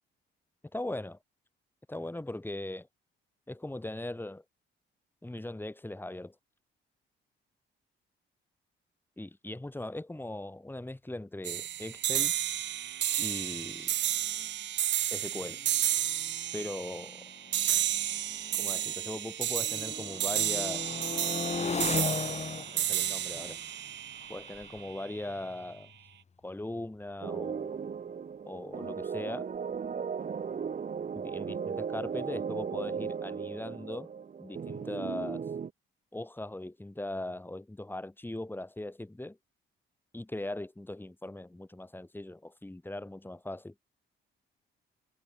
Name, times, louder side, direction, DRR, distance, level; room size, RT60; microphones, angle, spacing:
voice 1, 0.7-1.2 1.9-2.9 3.5-4.4 5.2-6.4 9.2-12.3 13.2-13.9 15.1-15.6 16.5-17.2 18.6-20.9 21.6-22.1 22.6-23.6 24.3-25.9 26.4-27.8 28.5-29.5 31.1-34.1 34.4-35.5 36.1-39.4 40.1-43.7, left 1 dB, 10° left, 6.8 m, -39 dB
sound 1, 11.4-24.9, right 12 dB, 65° right, 0.8 m, -32 dB
sound 2, 13.8-13.9 14.1-14.5 15.2-19.2 19.5-26.2, left 5 dB, 35° left, 3.3 m, -39 dB
sound 3, 27.2-35.7, right 6 dB, 40° right, 1.9 m, -36 dB
cardioid pair, 90°, 20 cm